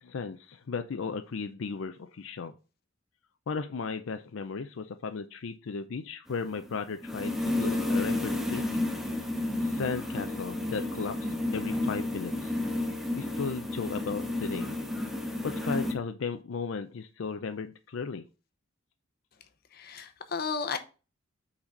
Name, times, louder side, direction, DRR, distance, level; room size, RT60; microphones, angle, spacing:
voice 1, 0.0-2.5 3.5-8.9 9.3-12.5 13.2-14.8 15.4-18.2, left 5 dB, 75° left, 0.5 m, -35 dB
sound 1, 6.3-15.9, left 1 dB, ahead, 0.8 m, -31 dB
voice 2, 19.7-20.8, left 5 dB, 50° left, 0.8 m, -33 dB
5.8 x 4.1 x 5.2 m
head